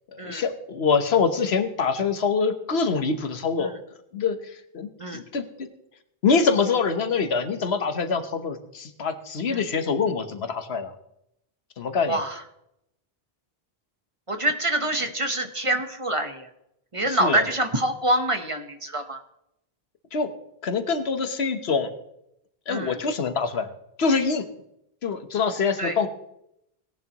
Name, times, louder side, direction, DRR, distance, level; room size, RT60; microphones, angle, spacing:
voice 1, 0.1-3.7 4.1-5.7 6.2-10.9 11.8-12.2 17.0-17.4 20.1-20.3 20.6-21.9 22.7-23.7 24.0-24.5 25.0-26.1, left 5 dB, 90° left, 9 dB, 1.3 m, -25 dB
voice 2, 12.0-12.4 14.3-16.5 16.9-19.2 22.7-23.0 25.8-26.0, right 1 dB, 30° right, 6 dB, 1.1 m, -26 dB
17.5 x 11.0 x 3.0 m, 0.79 s
omnidirectional pair, 1.0 m